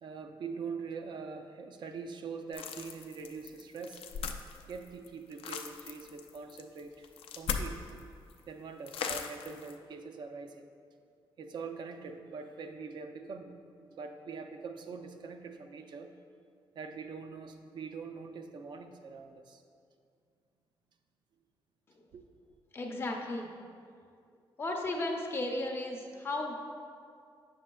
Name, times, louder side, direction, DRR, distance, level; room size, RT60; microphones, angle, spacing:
voice 1, 0.0-4.0 4.7-7.1 7.4-7.8 8.5-10.7 11.4-16.1 16.7-19.6 22.1-22.2, right 5 dB, 55° right, 6 dB, 0.4 m, -43 dB
sound 1, 2.5-8.0 8.3-8.4 8.9-9.8, left 6 dB, 90° left, 0.4 m, -39 dB
voice 2, 22.7-23.5 24.6-26.5, left 2 dB, 25° left, 1 dB, 0.6 m, -35 dB
7.9 x 6.3 x 2.3 m, 2.3 s
wide cardioid pair, 165°, 9 cm